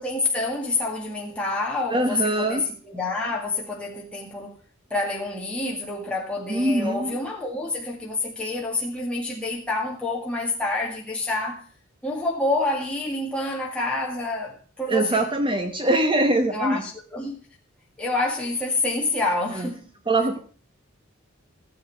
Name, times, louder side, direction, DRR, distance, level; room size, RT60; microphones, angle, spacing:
voice 1, 0.0-4.5 4.9-11.6 12.0-15.3 16.5-17.4 18.0-19.9, left 2 dB, 5° left, 2.0 m, -28 dB
voice 2, 1.9-2.6 6.5-7.1 14.9-16.8 19.6-19.7 20.1-20.4, right 1 dB, 25° right, 1.0 m, -22 dB
15.0 x 7.6 x 6.1 m
head